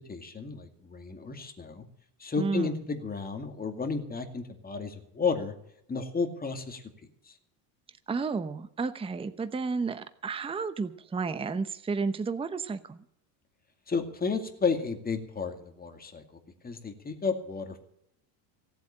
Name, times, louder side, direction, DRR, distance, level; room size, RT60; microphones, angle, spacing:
voice 1, 0.1-1.9 2.2-5.5 5.9-6.8 7.3-7.4 13.9-16.2 16.6-17.8, left 5 dB, 15° left, 5 dB, 2.2 m, -32 dB
voice 2, 2.4-2.8 8.1-13.0, right 4 dB, 10° right, 12 dB, 0.8 m, -32 dB
17.0 x 7.9 x 8.7 m, 0.74 s
supercardioid pair, 125°, 50 cm